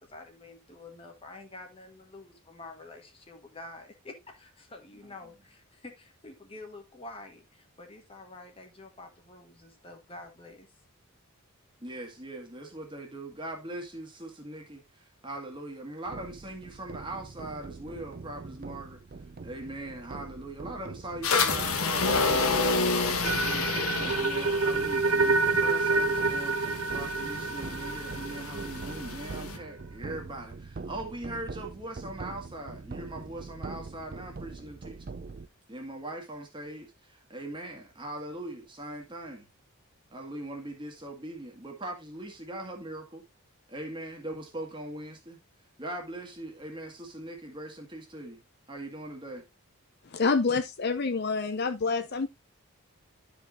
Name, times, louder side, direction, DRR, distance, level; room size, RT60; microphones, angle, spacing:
voice 1, 0.0-10.7, left 2 dB, 25° left, 1.3 m, -48 dB
voice 2, 11.8-19.0 19.4-22.8 23.2-26.6 26.9-35.1 35.7-39.5 40.1-43.2 43.7-45.4 45.8-48.4 48.7-49.5, right 1 dB, 20° right, 1.8 m, -41 dB
sound 1, 16.0-35.5, right 4 dB, 40° right, 0.4 m, -43 dB
sound 2, 21.2-29.6, left 4 dB, 80° left, 1.3 m, -30 dB
sound 3, 23.2-29.3, right 3 dB, 80° right, 1.1 m, -28 dB
voice 3, 50.1-52.3, left 4 dB, 45° left, 0.6 m, -27 dB
12.0 x 5.1 x 2.6 m
head